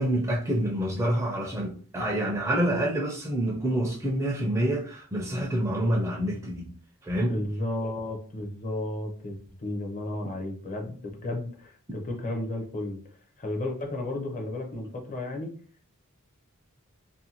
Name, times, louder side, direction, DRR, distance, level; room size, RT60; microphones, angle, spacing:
voice 1, 0.0-6.7 7.0-7.3, right 1 dB, 15° right, 0.4 m, -27 dB
voice 2, 7.3-13.0 13.4-15.5, left 1 dB, 35° left, 0.6 m, -33 dB
2.6 x 2.2 x 2.8 m
head